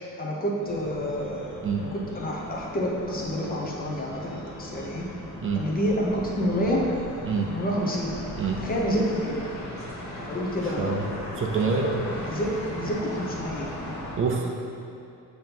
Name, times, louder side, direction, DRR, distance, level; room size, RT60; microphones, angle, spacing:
voice 1, 0.2-5.0 5.5-6.8 7.5-8.1 8.6-9.5 10.1-11.0 12.2-13.7, equal, 30° left, -2 dB, 0.8 m, -28 dB
sound 1, 0.6-14.2, left 1 dB, 60° left, 1.3 m, -38 dB
voice 2, 11.4-12.1 14.2-14.5, right 5 dB, 40° right, 1 dB, 0.5 m, -26 dB
7.5 x 2.9 x 5.3 m, 2.5 s
wide cardioid pair, 165°, 31 cm